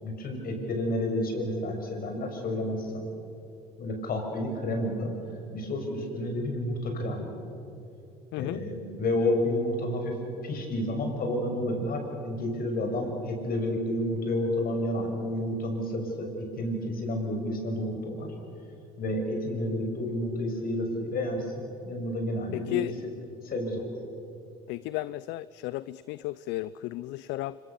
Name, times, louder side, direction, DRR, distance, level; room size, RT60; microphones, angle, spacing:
voice 1, 0.0-3.1 3.8-5.1 5.5-7.3 8.3-10.2 10.4-16.3 16.6-18.3 19.0-22.8 23.4-23.9, left 1 dB, 50° left, 3 dB, 6.3 m, -30 dB
voice 2, 22.5-22.9 24.7-27.6, left 18 dB, 65° left, 17 dB, 0.6 m, -33 dB
25.5 x 24.5 x 7.0 m, 2.8 s
hypercardioid pair, 75°, 19 cm